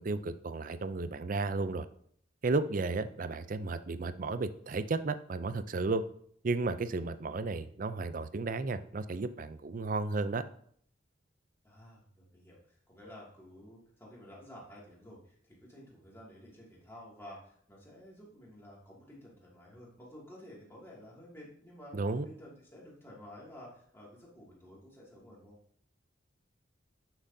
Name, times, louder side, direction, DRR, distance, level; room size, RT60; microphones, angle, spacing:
voice 1, 0.0-1.9 2.4-6.0 6.4-10.4 21.9-22.3, right 3 dB, 45° right, 12 dB, 0.4 m, -33 dB
voice 2, 11.6-22.0 22.2-25.6, left 1 dB, 15° left, -5 dB, 2.3 m, -52 dB
9.8 x 6.0 x 2.7 m, 0.62 s
head